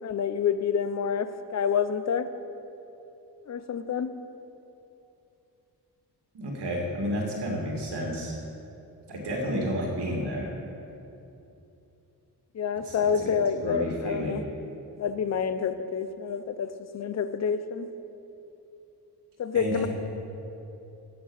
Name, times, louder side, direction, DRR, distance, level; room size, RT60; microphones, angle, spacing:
voice 1, 0.0-2.3 3.5-4.1 12.5-14.4 15.0-17.9 19.4-19.9, left 7 dB, 40° left, 11 dB, 0.6 m, -28 dB
voice 2, 6.3-8.4 9.1-10.5 12.8-13.3 13.6-14.4 19.5-19.9, equal, 80° right, -1 dB, 2.4 m, -31 dB
14.5 x 5.9 x 8.0 m, 2.9 s
wide cardioid pair, 155°, 40 cm